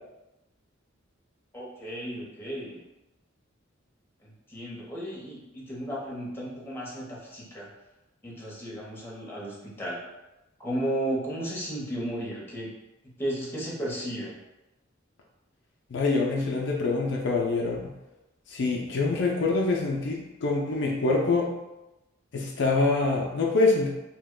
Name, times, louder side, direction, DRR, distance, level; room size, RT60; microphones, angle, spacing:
voice 1, 1.5-2.8 4.2-7.7 8.2-10.0 10.6-12.7 13.2-14.3, right 1 dB, 10° left, -5 dB, 0.7 m, -34 dB
voice 2, 15.9-17.9 18.5-21.5 22.3-23.9, left 3 dB, 60° left, -1 dB, 0.4 m, -25 dB
2.8 x 2.2 x 3.6 m, 0.99 s
head